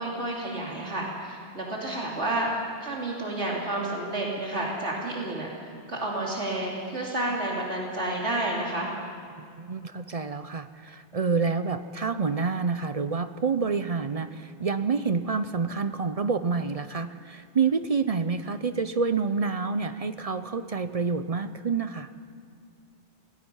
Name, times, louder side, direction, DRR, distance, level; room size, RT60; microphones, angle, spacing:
voice 1, 0.0-5.5 5.9-8.9, right 1 dB, 85° right, -3 dB, 3.4 m, -30 dB
voice 2, 9.4-22.1, right 5 dB, 40° right, 11 dB, 0.6 m, -28 dB
26.5 x 19.0 x 5.6 m, 2.2 s
omnidirectional pair, 1.1 m